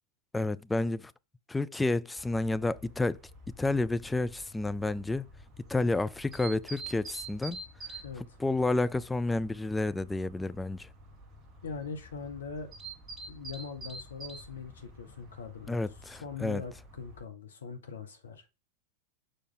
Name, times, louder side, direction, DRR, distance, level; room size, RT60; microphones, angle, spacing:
voice 1, 0.3-1.1 1.5-3.2 3.6-5.3 5.7-7.6 8.4-10.9 15.7-16.6, left 2 dB, 5° left, 0.3 m, -30 dB
sound 1, 2.2-17.2, right 2 dB, 20° right, 1.3 m, -48 dB
voice 2, 11.6-12.7 13.3-15.8 16.1-18.5, left 5 dB, 70° left, 1.2 m, -41 dB
6.7 x 4.9 x 3.9 m
figure-of-eight pair, 90°, 0 cm